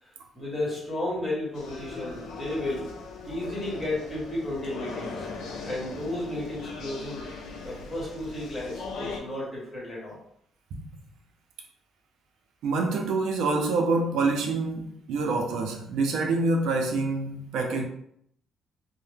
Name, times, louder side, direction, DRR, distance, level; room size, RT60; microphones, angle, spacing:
voice 1, 0.0-2.9 3.2-5.3 5.6-7.2 7.6-10.2, left 1 dB, 15° left, 1.4 m, -33 dB
sound 1, 1.5-9.2, left 4 dB, 85° left, 0.5 m, -39 dB
voice 2, 12.6-17.9, right 3 dB, 80° right, 0.4 m, -26 dB
2.7 x 2.0 x 3.4 m
cardioid pair, 115°, 0 cm